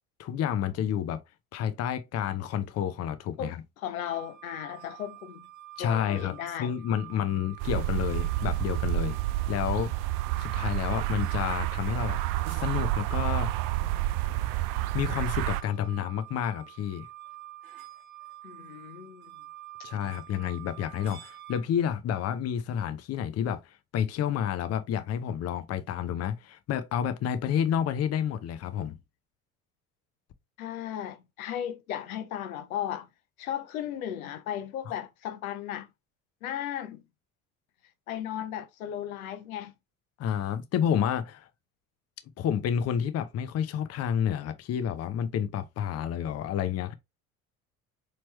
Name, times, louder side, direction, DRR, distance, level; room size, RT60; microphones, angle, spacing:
voice 1, 0.2-1.2 1.5-3.6 5.8-6.3 6.6-9.2 9.5-9.9 10.4-12.2 12.5-13.7 14.9-17.1 19.8-29.0 40.2-41.5 42.4-46.9, left 9 dB, 35° left, 0.7 m, -30 dB
voice 2, 3.4-5.5 5.8-6.7 18.4-19.3 30.6-33.1 33.4-35.9 36.4-37.0 38.1-39.7, left 10 dB, 70° left, 0.7 m, -36 dB
sound 1, 4.0-21.6, right 15 dB, 75° right, 1.1 m, -47 dB
sound 2, 7.6-15.6, right 16 dB, 50° right, 0.5 m, -29 dB
4.3 x 3.1 x 3.1 m
figure-of-eight pair, 60°, 43 cm